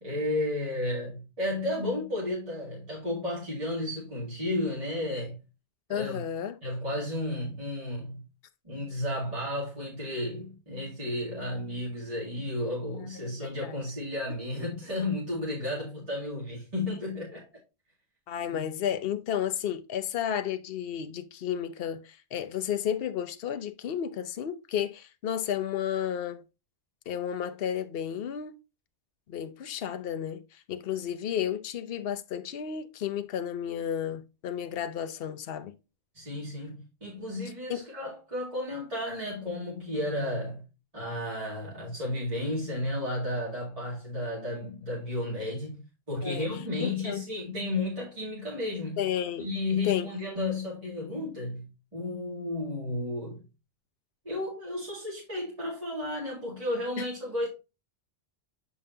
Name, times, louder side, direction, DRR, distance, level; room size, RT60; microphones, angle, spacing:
voice 1, 0.0-5.4 5.9-6.2 6.6-8.2 8.6-17.5 18.5-18.7 36.1-40.6 40.9-45.8 46.1-49.0 49.4-53.4 54.2-57.5, left 1 dB, 30° right, 2.4 m, -33 dB
voice 2, 5.9-6.6 13.4-13.8 18.3-26.4 27.1-28.6 29.3-35.7 37.7-37.8 46.2-46.5 46.8-47.2 49.0-49.5 49.8-50.1 57.0-57.1, left 9 dB, 60° left, 0.9 m, -32 dB
7.7 x 5.4 x 2.8 m
omnidirectional pair, 1.2 m